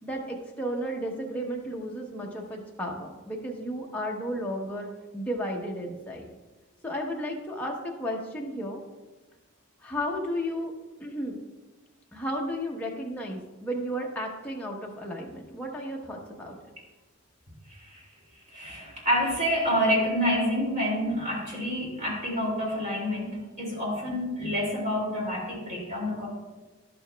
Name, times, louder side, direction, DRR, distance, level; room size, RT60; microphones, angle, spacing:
voice 1, 0.0-6.3 6.8-8.8 9.8-10.7 11.0-11.4 12.1-16.6, equal, 5° left, -2 dB, 0.9 m, -33 dB
voice 2, 17.7-18.0 18.5-26.3, equal, 35° right, -3 dB, 2.4 m, -28 dB
11.0 x 6.9 x 2.3 m, 1.2 s
head